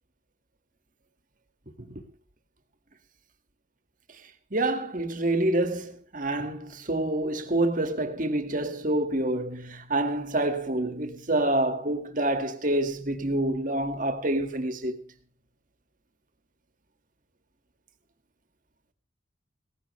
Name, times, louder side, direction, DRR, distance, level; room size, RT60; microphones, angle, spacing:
voice 1, 4.5-15.0, right 1 dB, 45° right, 2.0 m, -27 dB
18.5 x 15.0 x 3.3 m
head